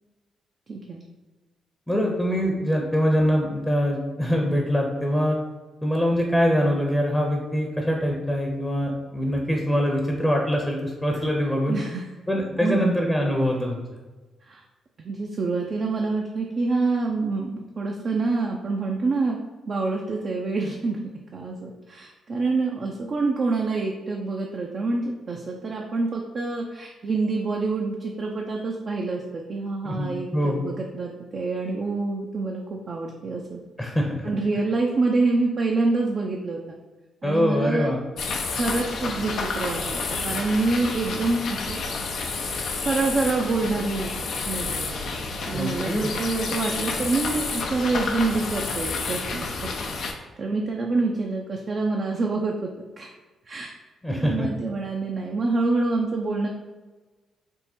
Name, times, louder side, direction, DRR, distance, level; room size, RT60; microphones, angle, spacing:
voice 1, 0.7-1.0 11.7-12.0 12.6-12.9 14.5-14.6 15.0-19.4 19.7-21.0 21.3-33.6 34.2-36.8 37.2-37.9 38.5-41.8 42.8-44.9 45.5-49.8 50.4-52.7 53.0-53.1 53.5-53.7 54.2-56.5, right 3 dB, 55° right, 0 dB, 0.5 m, -26 dB
voice 2, 1.9-5.4 5.8-11.8 12.3-13.8 29.8-30.7 33.8-34.1 37.2-38.0 45.5-46.1 54.0-54.5, equal, 10° left, 0 dB, 0.7 m, -23 dB
sound 1, 38.2-50.1, left 4 dB, 70° left, 0.5 m, -30 dB
3.6 x 2.1 x 4.2 m, 1.2 s
supercardioid pair, 60°, 0 cm